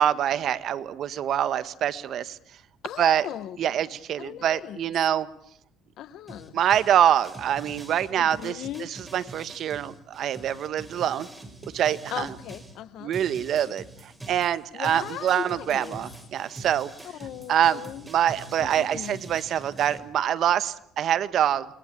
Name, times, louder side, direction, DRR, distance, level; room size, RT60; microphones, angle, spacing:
voice 1, 0.0-2.4 3.0-3.2 3.6-5.3 6.5-8.6 9.1-11.3 11.7-12.3 13.0-16.9 17.5-17.8 18.1-21.7, right 10 dB, 55° right, 14 dB, 1.4 m, -25 dB
voice 2, 2.8-3.8 4.2-4.9 6.0-6.6 8.2-8.9 12.1-13.1 14.7-16.0 17.0-18.1 18.6-19.2, left 11 dB, 65° left, 15 dB, 1.5 m, -38 dB
sound 1, 6.3-12.8 13.1-20.0, right 2 dB, 10° right, 4.8 m, -44 dB
29.0 x 22.0 x 8.5 m, 0.69 s
cardioid pair, 145°, 0 cm